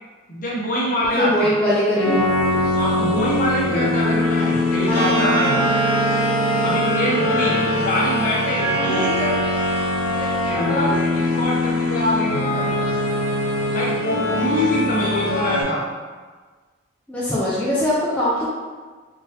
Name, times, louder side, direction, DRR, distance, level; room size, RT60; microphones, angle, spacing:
voice 1, 0.3-1.5 2.7-5.5 6.6-9.4 10.0-12.7 13.7-14.0 14.3-15.8, equal, 40° left, -4 dB, 0.7 m, -24 dB
voice 2, 1.0-2.3 17.1-18.5, left 1 dB, 5° left, -9 dB, 0.4 m, -21 dB
sound 1, 1.9-15.6, left 1 dB, 90° left, 0.8 m, -23 dB
Wind instrument woodwind instrument, 4.0-8.4, right 6 dB, 80° right, 0.3 m, -31 dB
sound 2, 4.8-10.7, equal, 65° right, 1.4 m, -24 dB
3.7 x 2.7 x 2.7 m, 1.4 s
head